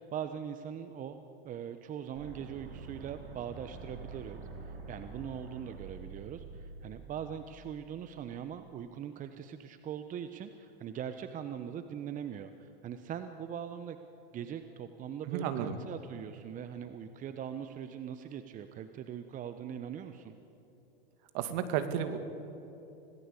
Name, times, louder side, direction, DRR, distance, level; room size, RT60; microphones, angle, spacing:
voice 1, 0.0-4.4 4.6-14.0 14.3-20.3, right 8 dB, 25° right, 9 dB, 1.0 m, -41 dB
sound 1, 2.2-8.1, right 4 dB, 75° right, 5.6 m, -47 dB
voice 2, 15.3-15.8 21.3-22.2, right 9 dB, 50° right, 9 dB, 2.4 m, -32 dB
26.0 x 18.0 x 8.4 m, 3.0 s
hypercardioid pair, 115°, 30 cm